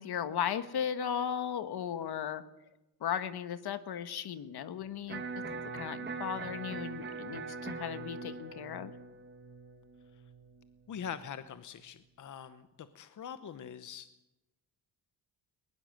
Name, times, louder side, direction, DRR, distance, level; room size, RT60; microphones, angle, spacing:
voice 1, 0.0-2.4 3.0-8.9, left 8 dB, 65° left, 12 dB, 1.5 m, -36 dB
Electric guitar, 5.1-11.1, right 4 dB, 25° right, 1.5 m, -42 dB
voice 2, 10.9-14.1, left 8 dB, 45° left, 11 dB, 1.0 m, -43 dB
21.0 x 20.5 x 7.9 m, 0.98 s
cardioid pair, 165°, 42 cm